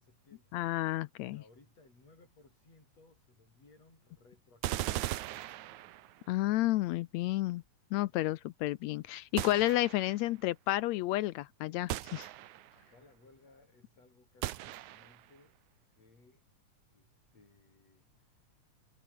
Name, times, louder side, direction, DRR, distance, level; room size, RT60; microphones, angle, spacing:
voice 1, 0.0-5.7 8.0-8.3 12.7-15.6 15.9-16.4 16.9-18.5, left 3 dB, 60° left, 9.1 m, -63 dB
voice 2, 0.5-1.4 6.3-7.6 7.9-12.3, left 16 dB, 75° left, 1.8 m, -31 dB
sound 1, 4.6-6.3 9.4-10.2 11.9-12.8 14.4-15.3, right 15 dB, 85° right, 2.3 m, -38 dB
omnidirectional pair, 3.3 m